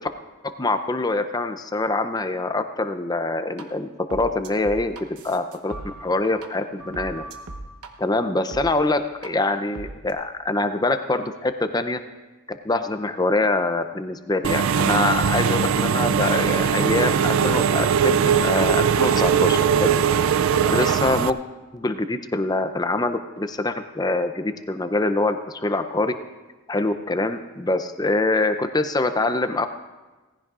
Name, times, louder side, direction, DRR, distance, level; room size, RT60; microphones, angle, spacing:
voice 1, 0.4-7.2 8.0-12.0 12.6-19.9 20.7-21.4 21.7-26.1 26.7-29.7, left 2 dB, 15° left, 8 dB, 0.5 m, -24 dB
sound 1, 3.6-3.7 4.1-6.5 6.8-7.9 8.5-8.6 9.2-9.3 9.7-10.1, right 2 dB, 85° right, 1.1 m, -38 dB
Engine / Mechanisms, 14.4-21.3, right 7 dB, 65° right, 0.3 m, -20 dB
18.5 x 15.0 x 2.5 m, 1.2 s
head